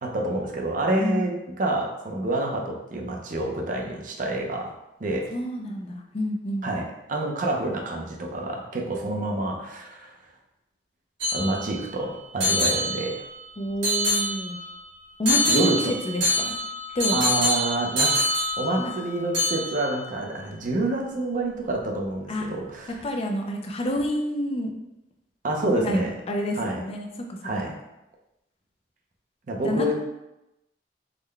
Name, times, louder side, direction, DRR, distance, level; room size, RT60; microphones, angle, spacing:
voice 1, 0.0-4.7 5.0-5.3 6.6-10.1 11.3-13.1 15.5-15.9 17.1-18.1 18.6-23.0 25.4-26.1 26.6-26.8 27.4-27.7 29.5-29.9, right 2 dB, 50° right, 0 dB, 0.5 m, -28 dB
voice 2, 5.3-6.7 13.6-14.6 15.2-15.7 16.0-16.5 16.9-17.2 18.8-18.9 22.3-22.5 23.0-24.7 25.7-27.7 29.6-29.9, left 1 dB, 35° left, 2 dB, 0.4 m, -29 dB
sound 1, 11.2-11.9 12.4-13.4 13.8-14.7 15.3-19.1 19.3-20.0, left 1 dB, 85° right, 1.4 m, -25 dB
3.7 x 2.1 x 3.2 m, 0.91 s
head